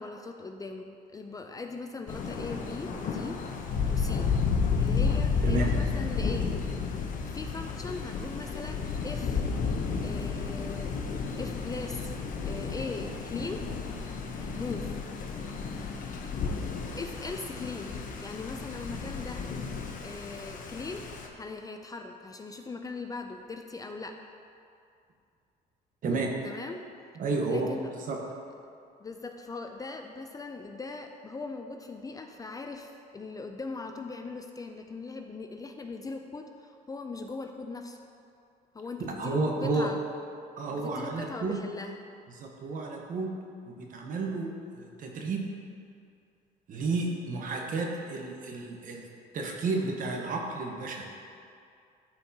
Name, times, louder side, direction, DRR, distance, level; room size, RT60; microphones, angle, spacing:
voice 1, 0.0-3.4 3.9-4.3 4.7-6.5 7.3-9.5 10.0-10.9 11.3-12.1 12.4-13.6 14.6-15.1 16.9-17.9 18.2-19.4 20.0-21.0 21.3-24.2 26.4-26.8 27.5-27.9 29.0-38.0 38.7-40.0 40.7-42.0, left 3 dB, 20° left, 4 dB, 0.4 m, -40 dB
Thunder, 2.1-21.3, left 5 dB, 50° left, 0.8 m, -32 dB
voice 2, 26.0-26.3 27.2-27.7 28.1-28.2 39.0-39.9 40.6-41.6 42.3-43.3 43.7-44.5 44.7-45.5 46.7-49.1 49.3-51.0, right 3 dB, 55° right, 0 dB, 1.1 m, -31 dB
13.0 x 4.5 x 2.8 m, 2.4 s
cardioid pair, 110°, 17 cm